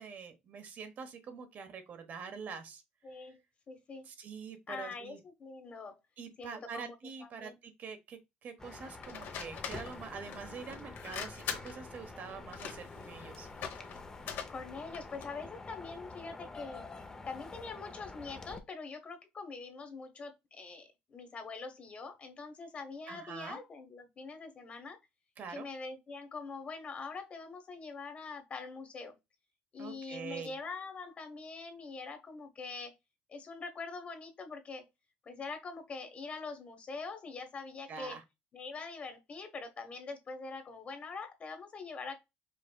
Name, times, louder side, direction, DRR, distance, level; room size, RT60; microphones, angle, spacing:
voice 1, 0.0-2.8 3.1-3.3 4.0-5.2 6.2-13.8 23.1-23.6 25.4-25.7 29.8-30.5 37.9-38.2, right 6 dB, 50° right, 1.1 m, -45 dB
voice 2, 3.0-3.4 3.7-4.0 4.7-5.9 6.4-6.9 7.2-7.6 14.5-16.9 17.2-25.0 25.5-29.1 29.7-32.9 33.3-34.8 35.2-38.2 38.5-42.2, left 4 dB, 35° left, 1.2 m, -44 dB
sound 1, 8.6-18.6, left 3 dB, 15° left, 0.6 m, -48 dB
sound 2, 9.0-15.4, left 7 dB, 65° left, 1.0 m, -43 dB
5.2 x 3.3 x 2.3 m
cardioid pair, 120°, 4 cm